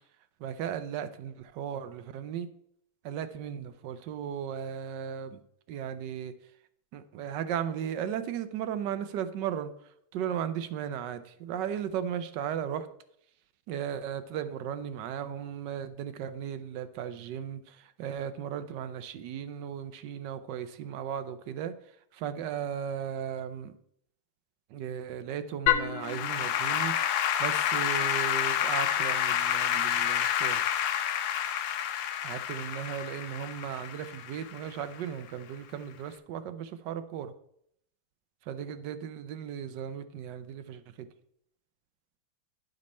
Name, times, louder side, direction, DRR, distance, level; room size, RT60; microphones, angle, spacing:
voice 1, 0.4-2.5 3.0-5.4 5.7-6.3 6.9-9.7 10.1-12.9 13.7-21.7 22.1-23.7 24.7-27.1 27.4-30.6 32.2-37.3 38.5-41.1, right 9 dB, 70° right, 11 dB, 1.2 m, -36 dB
Applause / Keyboard (musical), 25.7-35.0, left 10 dB, 85° left, 1.4 m, -29 dB
10.5 x 5.3 x 4.2 m, 0.71 s
omnidirectional pair, 2.1 m